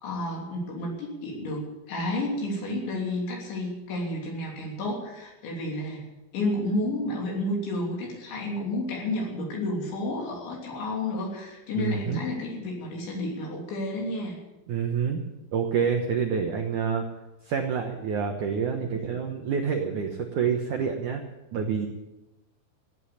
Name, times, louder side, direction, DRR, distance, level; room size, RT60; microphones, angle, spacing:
voice 1, 0.0-6.1 6.3-14.4, left 1 dB, 75° left, -1 dB, 5.4 m, -31 dB
voice 2, 11.8-12.2 14.7-15.2 15.5-17.1 17.4-21.2 21.5-21.9, right 6 dB, 80° right, 3 dB, 1.8 m, -27 dB
15.5 x 9.4 x 8.6 m, 1.0 s
omnidirectional pair, 5.3 m